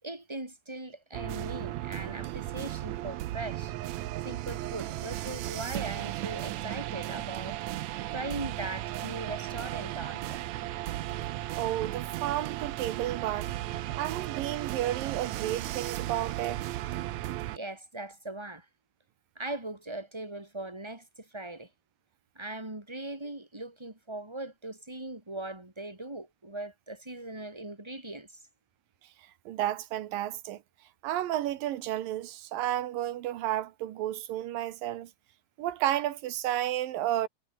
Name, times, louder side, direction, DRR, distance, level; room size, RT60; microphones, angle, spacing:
voice 1, 0.0-3.7 4.2-7.6 8.1-10.5 17.5-18.6 19.3-21.7 22.3-28.4, right 2 dB, 5° right, 5.0 m, -40 dB
sound 1, 1.1-17.6, right 15 dB, 70° right, 1.9 m, -35 dB
voice 2, 11.6-13.5 14.0-16.7 29.5-30.6 31.0-35.1 35.6-37.3, right 13 dB, 90° right, 3.0 m, -32 dB
omnidirectional pair, 3.8 m